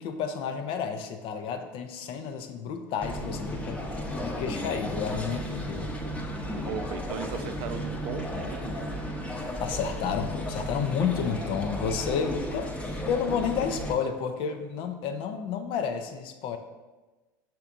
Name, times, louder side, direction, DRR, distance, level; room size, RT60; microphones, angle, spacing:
voice 1, 0.0-3.8 4.2-5.9 9.6-16.6, left 7 dB, 55° left, 7 dB, 0.5 m, -31 dB
sound 1, 3.0-13.9, equal, 10° left, 0.8 m, -34 dB
voice 2, 6.6-8.9, right 8 dB, 60° right, 8 dB, 0.4 m, -37 dB
5.8 x 3.4 x 2.5 m, 1.2 s
hypercardioid pair, 80°, 11 cm